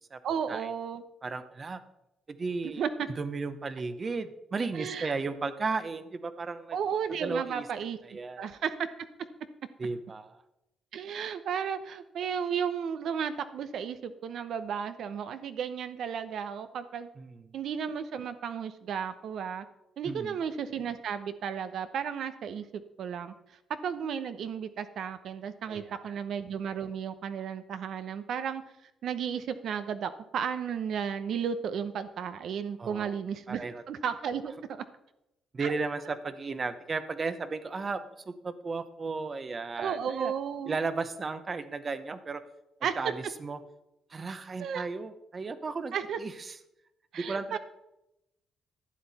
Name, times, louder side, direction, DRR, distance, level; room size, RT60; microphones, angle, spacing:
voice 1, 0.2-1.0 2.8-3.1 4.7-5.1 6.7-8.0 8.4-8.9 10.9-17.1 17.5-19.6 20.0-23.3 23.8-28.6 29.0-34.8 35.6-35.7 39.8-40.8 42.8-42.9 44.6-44.9 45.9-46.2 47.1-47.6, right 7 dB, 70° right, 11 dB, 0.8 m, -34 dB
voice 2, 1.2-1.8 2.3-2.8 3.2-6.8 7.2-7.7 8.0-8.4 9.8-10.4 17.2-17.5 20.0-20.4 25.7-26.2 32.8-33.1 33.5-33.8 35.5-40.3 40.6-42.4 43.0-43.6 44.1-46.6 47.1-47.6, right 4 dB, 35° right, 12 dB, 0.8 m, -35 dB
11.5 x 8.1 x 4.2 m, 0.88 s
cardioid pair, 90°, 0 cm